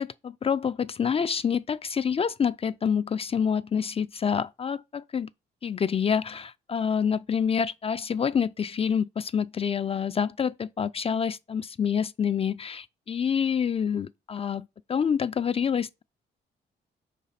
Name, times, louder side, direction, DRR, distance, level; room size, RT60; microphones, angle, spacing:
voice 1, 0.0-5.3 5.6-16.0, left 7 dB, 30° left, 0.4 m, -27 dB
4.7 x 4.1 x 5.7 m
cardioid pair, 70°, 18 cm